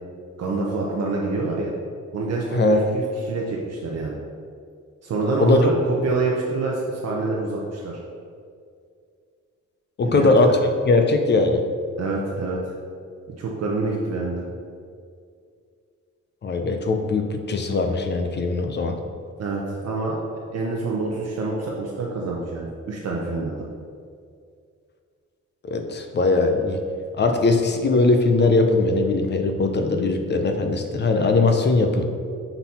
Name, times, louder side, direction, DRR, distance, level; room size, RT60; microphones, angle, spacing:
voice 1, 0.4-1.7 2.1-4.2 5.0-5.8 6.0-8.0 10.0-10.3 12.0-12.6 13.4-14.4 19.4-20.2 20.5-23.7, right 3 dB, 60° right, -2 dB, 0.7 m, -26 dB
voice 2, 2.5-2.9 5.4-5.7 10.0-10.5 10.9-11.6 16.4-19.0 25.6-26.8 27.1-32.0, left 3 dB, 35° left, 5 dB, 0.5 m, -20 dB
5.9 x 4.0 x 4.2 m, 2.3 s
wide cardioid pair, 165°, 29 cm